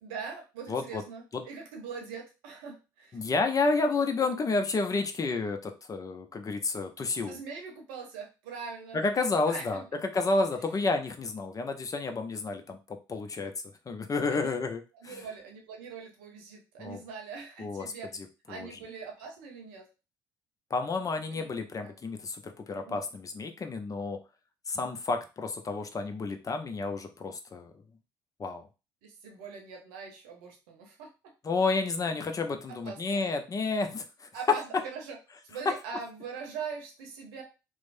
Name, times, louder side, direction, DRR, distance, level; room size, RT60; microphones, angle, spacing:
voice 1, 0.0-3.2 7.2-9.0 9.4-9.8 14.3-14.5 15.0-18.1 18.5-19.9 21.3-21.5 21.8-21.9 22.8-23.0 29.0-31.1 32.7-33.2 34.3-35.2 35.5-37.4, right 5 dB, 75° right, 2 dB, 0.8 m, -42 dB
voice 2, 0.7-1.0 1.3-1.4 3.1-7.4 8.9-13.5 13.9-15.2 16.8-17.0 17.6-17.9 18.5-18.8 20.7-24.2 24.7-27.7 28.4-28.7 31.4-34.3 35.7-35.8, left 3 dB, 30° left, 6 dB, 0.6 m, -30 dB
3.1 x 2.1 x 2.6 m, 0.29 s
hypercardioid pair, 60°, 11 cm